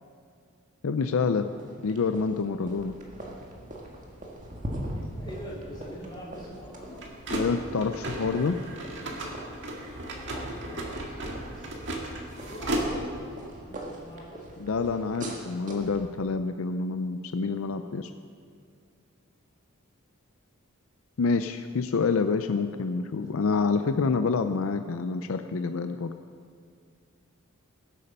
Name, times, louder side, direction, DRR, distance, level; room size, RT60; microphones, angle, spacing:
voice 1, 0.8-1.5 1.8-2.9 7.3-8.6 14.6-18.1 21.2-26.1, left 4 dB, 70° left, 9 dB, 0.5 m, -27 dB
sound 1, 1.2-16.0, right 1 dB, 35° right, 1.8 m, -42 dB
sound 2, 2.6-13.4, right 1 dB, 55° right, 2.0 m, -36 dB
voice 2, 4.9-7.0 10.0-11.7 12.5-14.5 22.9-23.3, equal, 20° left, -4 dB, 3.5 m, -44 dB
20.0 x 8.5 x 5.4 m, 2.3 s
head